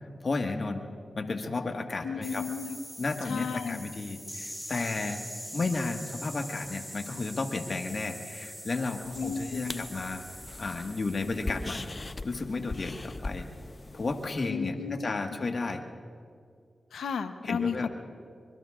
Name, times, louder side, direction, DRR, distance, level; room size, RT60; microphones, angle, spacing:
voice 1, 0.2-0.9 1.2-2.4 3.0-5.2 5.5-10.2 10.6-11.9 12.2-13.5 13.9-15.8 17.4-17.9, left 3 dB, 55° left, 4 dB, 1.6 m, -33 dB
voice 2, 2.0-2.8 3.2-3.8 9.1-9.8 14.5-15.4 16.9-17.9, left 6 dB, 85° left, 9 dB, 0.8 m, -34 dB
sound 1, 2.2-12.1, equal, ahead, 2.4 m, -43 dB
sound 2, 9.1-14.3, left 2 dB, 40° left, 0.7 m, -40 dB
24.0 x 24.0 x 2.5 m, 2.2 s
cardioid pair, 40°, 0 cm